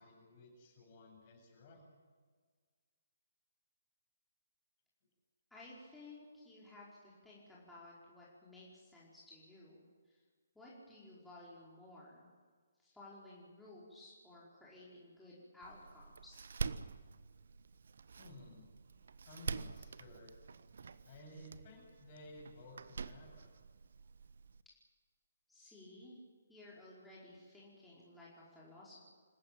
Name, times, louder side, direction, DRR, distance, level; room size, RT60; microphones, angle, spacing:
voice 1, 0.0-1.8 18.2-18.7 19.2-20.3 21.0-23.5, left 1 dB, 35° left, 1 dB, 7.8 m, -55 dB
voice 2, 5.5-10.2 10.5-12.3 12.8-16.4 25.5-26.2 26.5-29.0, left 2 dB, 5° left, -8 dB, 5.0 m, -56 dB
Door, 15.6-24.6, right 5 dB, 60° right, 0.9 m, -46 dB
27.0 x 15.0 x 9.0 m, 1.6 s
figure-of-eight pair, 135°, 0 cm